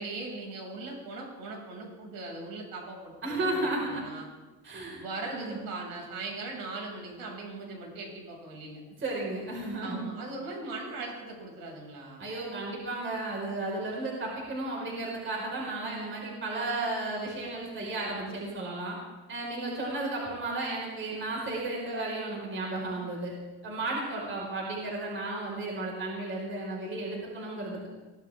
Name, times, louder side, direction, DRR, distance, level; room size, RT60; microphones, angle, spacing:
voice 1, 0.0-4.2 4.9-8.8 9.8-12.2, right 3 dB, 65° right, -1 dB, 6.5 m, -39 dB
voice 2, 3.2-4.0 4.6-5.6 9.0-10.1 12.2-19.0 19.3-23.3 23.6-27.9, right 2 dB, 30° right, -2 dB, 5.0 m, -34 dB
23.5 x 16.5 x 3.7 m, 1.2 s
cardioid pair, 145°, 37 cm